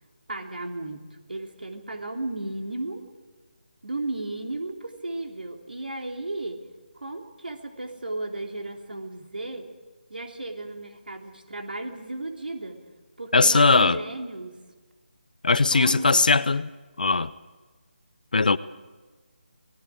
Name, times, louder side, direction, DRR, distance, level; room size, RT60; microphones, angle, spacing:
voice 1, 0.3-3.0 3.8-6.6 6.9-9.7 10.1-12.8 13.2-14.6 15.7-16.2, right 2 dB, 60° right, 3.1 m, -34 dB
voice 2, 13.3-14.0 15.4-16.7 17.0-17.3 18.3-18.6, left 3 dB, 50° left, 0.8 m, -19 dB
29.0 x 19.5 x 5.0 m
figure-of-eight pair, 155°, 6 cm